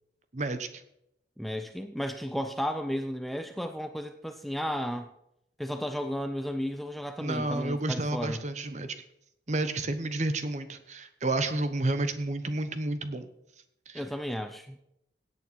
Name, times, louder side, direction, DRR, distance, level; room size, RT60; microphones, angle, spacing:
voice 1, 0.3-0.8 7.2-8.9 9.5-13.3 13.9-14.0, right 2 dB, 40° right, 10 dB, 1.0 m, -31 dB
voice 2, 1.4-5.1 5.6-8.4 13.9-14.8, equal, ahead, 8 dB, 0.5 m, -33 dB
16.5 x 8.6 x 4.5 m, 0.79 s
head